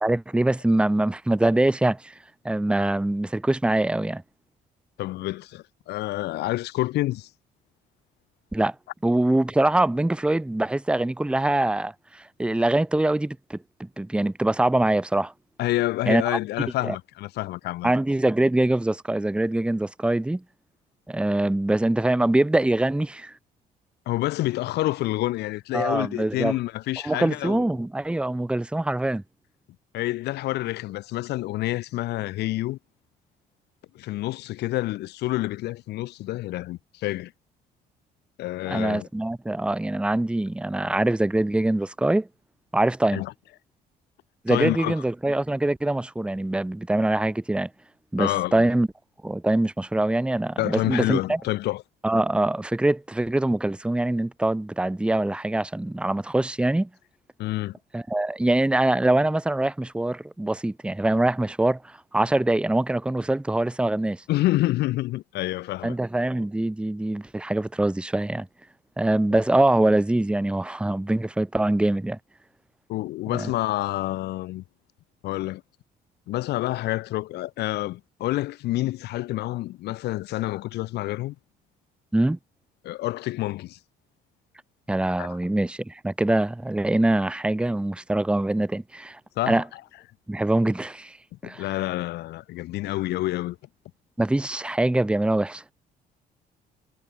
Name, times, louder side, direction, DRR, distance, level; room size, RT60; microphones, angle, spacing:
voice 1, 0.0-2.1 2.4-4.2 8.5-8.7 9.0-15.3 16.1-16.4 16.8-16.9 17.8-20.4 21.1-23.3 25.7-26.6 27.0-29.2 38.7-42.3 42.7-43.2 44.4-47.7 48.1-48.9 49.2-51.4 52.0-56.9 57.9-64.2 65.8-68.5 69.0-72.2 73.3-73.5 82.1-82.4 84.9-89.2 89.5-89.6 90.3-91.2 91.4-91.6 94.2-95.6, right 1 dB, 5° right, 1.1 m, -23 dB
voice 2, 5.0-7.3 15.6-17.9 24.1-27.7 29.9-32.8 33.9-37.3 38.4-39.1 43.1-43.3 44.5-44.9 48.2-48.7 50.6-51.8 57.4-57.7 64.3-65.9 72.9-74.6 75.2-75.6 76.3-81.4 82.8-83.8 85.2-85.3 89.4-89.6 91.4-93.6, left 16 dB, 80° left, 2.6 m, -28 dB
cardioid pair, 110°, 17 cm